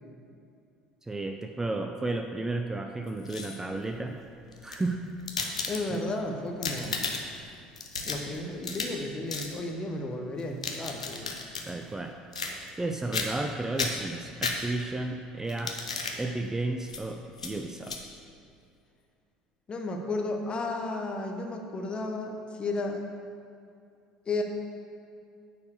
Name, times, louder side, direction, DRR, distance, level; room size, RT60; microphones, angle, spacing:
voice 1, 1.0-4.2 4.6-5.1 11.7-12.2 12.8-15.8 16.2-18.0, right 2 dB, 15° right, 4 dB, 0.5 m, -33 dB
sound 1, 3.1-3.8 4.5-6.1 6.5-7.4 7.8-9.0 9.3-9.5 10.4-11.7 12.3-12.8 13.1-13.5 13.8-15.0 15.5-16.2 16.9-17.0 17.4-17.5 17.8-18.0, left 4 dB, 80° left, 0.7 m, -34 dB
voice 2, 5.7-7.0 8.1-11.3 19.7-23.0 24.3-24.4, left 2 dB, 30° left, 2 dB, 1.2 m, -33 dB
9.5 x 4.7 x 6.6 m, 2.5 s
figure-of-eight pair, 65°, 3 cm